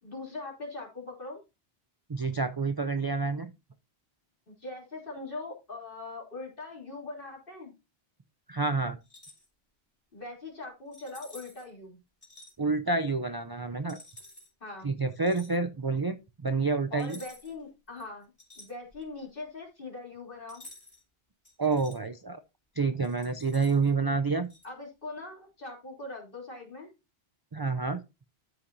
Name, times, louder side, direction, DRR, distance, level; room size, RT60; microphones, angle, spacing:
voice 1, 0.0-1.4 4.5-7.7 10.1-12.0 14.6-14.9 16.9-18.3 18.6-20.6 24.6-26.9, left 3 dB, 55° left, -2 dB, 3.5 m, -41 dB
voice 2, 2.1-3.5 8.5-9.0 12.6-14.0 14.8-16.2 16.4-17.2 21.6-22.4 22.8-24.5 27.5-28.0, right 4 dB, 35° right, 9 dB, 0.3 m, -28 dB
sound 1, 9.0-9.5 10.9-11.7 12.2-12.5 13.9-14.5 15.2-15.6 17.0-17.6 18.0-19.2 20.5-21.0 21.4-22.0 23.0-23.9 24.5-24.7, left 1 dB, 35° left, 4.4 m, -51 dB
13.0 x 5.8 x 2.7 m, 0.26 s
omnidirectional pair, 1.1 m